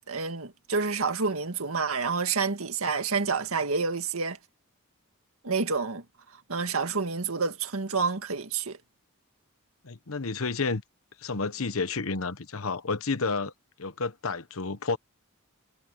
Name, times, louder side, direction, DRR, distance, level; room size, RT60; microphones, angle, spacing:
voice 1, 0.1-4.4 5.4-6.0 6.5-8.8, right 4 dB, 85° right, 1.9 m, -28 dB
voice 2, 9.8-10.8 11.2-13.5 13.8-15.0, left 4 dB, 80° left, 1.1 m, -30 dB
head